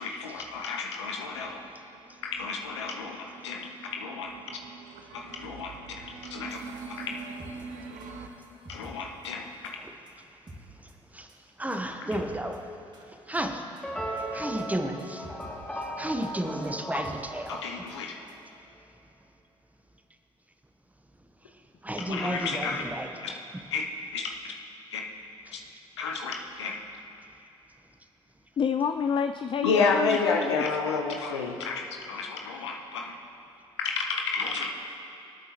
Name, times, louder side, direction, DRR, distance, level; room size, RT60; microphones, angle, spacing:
voice 1, 0.0-1.6 2.2-3.2 3.4-4.3 5.1-5.7 6.0-6.6 7.0-7.2 8.7-9.5 16.9-17.0 17.5-18.2 22.0-22.8 23.2-23.3 23.7-23.8 24.1-24.5 24.9-25.0 25.5-25.6 26.0-26.8 29.6-33.2 33.8-34.8, left 4 dB, 90° left, 2 dB, 0.8 m, -31 dB
sound 1, 1.6-8.3, right 4 dB, 60° right, 1.0 m, -44 dB
sound 2, 6.5-8.9 9.2-9.3 9.6-9.7 10.1-10.2 10.5-10.6 10.9-11.0 11.3-11.4 11.7-11.8 12.1-12.6 12.9-13.1 13.3-13.4 13.8-14.2 14.6-14.7 15.0-15.5 15.8-15.9 16.2-16.4 16.6-16.7 17.0-17.2 17.4-17.5 17.9-18.0 18.3-18.4 18.7-18.8, right 1 dB, 30° right, 2.2 m, -48 dB
voice 2, 11.6-12.6 13.3-13.6 14.3-15.2 16.0-17.6 21.8-23.1, right 1 dB, 10° right, 5 dB, 1.1 m, -32 dB
sound 3, 13.8-18.1, right 1 dB, 5° left, 3.2 m, -37 dB
voice 3, 28.6-30.6, left 6 dB, 35° left, 8 dB, 0.4 m, -28 dB
23.5 x 8.6 x 3.0 m, 2.7 s
hypercardioid pair, 50°, 14 cm